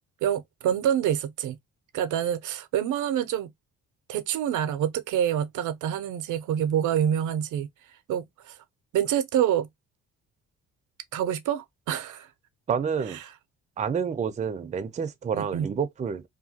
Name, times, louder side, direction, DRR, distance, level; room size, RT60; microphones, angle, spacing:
voice 1, 0.2-1.6 1.9-3.5 4.1-7.7 8.1-8.6 8.9-9.7 11.1-12.3 15.3-15.7, right 10 dB, 80° right, 0.5 m, -26 dB
voice 2, 12.7-13.2 13.8-16.2, right 6 dB, 25° right, 0.4 m, -29 dB
2.8 x 2.2 x 2.7 m
cardioid pair, 90°, 30 cm